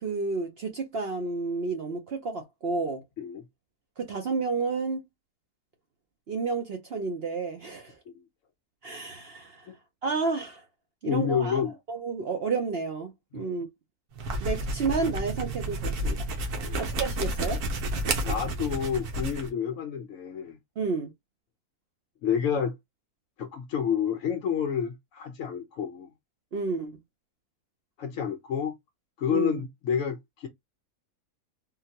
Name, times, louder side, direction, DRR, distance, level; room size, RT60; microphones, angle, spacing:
voice 1, 0.0-3.0 4.0-5.0 6.3-8.0 8.8-9.6 10.0-10.6 11.0-11.6 11.9-13.7 14.4-16.3 16.8-17.6 20.8-21.1 26.5-27.0 29.3-29.6, right 4 dB, 55° right, 0.7 m, -31 dB
voice 2, 11.1-11.8 13.3-13.6 16.6-16.8 18.2-20.6 22.2-22.8 23.4-26.1 28.0-28.8 29.2-30.5, left 8 dB, 65° left, 0.9 m, -29 dB
sound 1, 14.1-19.5, right 1 dB, 80° right, 1.3 m, -31 dB
3.8 x 2.2 x 2.7 m
omnidirectional pair, 1.6 m